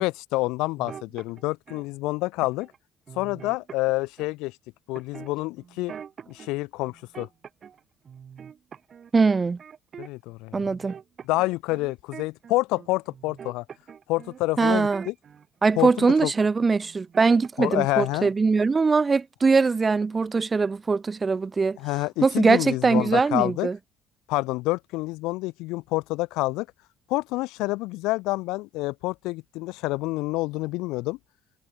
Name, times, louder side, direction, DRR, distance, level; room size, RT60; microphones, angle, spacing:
voice 1, 0.0-2.7 3.1-4.6 4.9-5.9 6.3-7.3 10.0-10.8 11.2-13.6 14.1-15.1 15.8-16.3 17.6-18.3 21.8-23.7 24.3-26.7 27.1-31.2, left 21 dB, 90° left, 3.0 m, -28 dB
sound 1, 0.8-1.8 2.4-2.8 3.1-4.3 4.9-6.5 6.8-10.3 10.6-15.5 15.8-16.5 16.8-17.8 18.1-18.4, right 7 dB, 40° right, 4.3 m, -44 dB
voice 2, 9.1-9.6 10.5-10.9 14.6-15.0 15.6-21.8 22.2-23.8, right 4 dB, 25° right, 2.4 m, -22 dB
cardioid pair, 120°, 0 cm